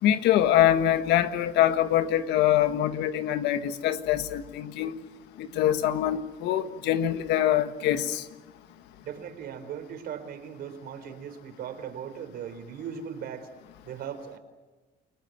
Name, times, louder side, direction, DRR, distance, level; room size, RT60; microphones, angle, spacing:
voice 1, 0.0-4.9 5.4-8.3, left 11 dB, 85° left, 9 dB, 1.6 m, -24 dB
voice 2, 9.0-13.5 13.9-14.4, right 8 dB, 70° right, 8 dB, 4.3 m, -38 dB
29.5 x 18.5 x 9.3 m, 1.2 s
cardioid pair, 110°, 17 cm